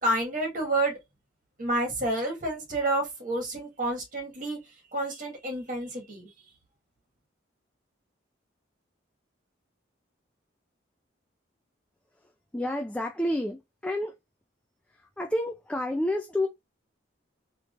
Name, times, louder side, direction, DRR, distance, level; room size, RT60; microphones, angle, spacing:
voice 1, 0.0-1.0 1.6-4.6 4.9-6.3, right 1 dB, 45° right, 1.7 m, -29 dB
voice 2, 12.5-14.1 14.9-16.5, left 1 dB, 5° left, 0.3 m, -29 dB
3.6 x 3.0 x 2.5 m
head